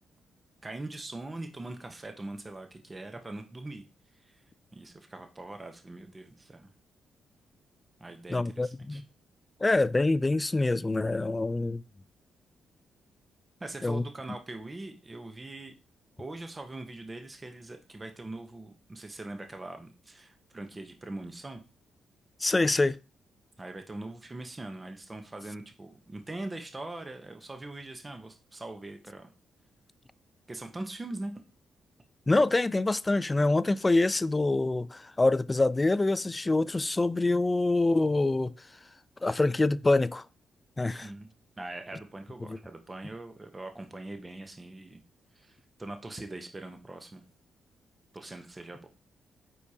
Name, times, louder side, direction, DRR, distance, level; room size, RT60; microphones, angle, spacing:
voice 1, 0.6-3.8 4.2-4.4 4.7-6.7 8.0-9.0 13.6-15.7 16.2-21.6 23.6-29.3 30.5-31.4 41.0-41.3 41.6-45.0 45.3-47.2 48.1-48.9, right 2 dB, 25° right, 0.9 m, -42 dB
voice 2, 8.3-9.0 9.6-11.8 13.8-14.0 22.4-23.0 32.3-38.5 39.2-40.2 40.8-41.1 42.5-42.6, left 2 dB, 20° left, 0.3 m, -25 dB
8.1 x 4.8 x 2.8 m
cardioid pair, 70°, 0 cm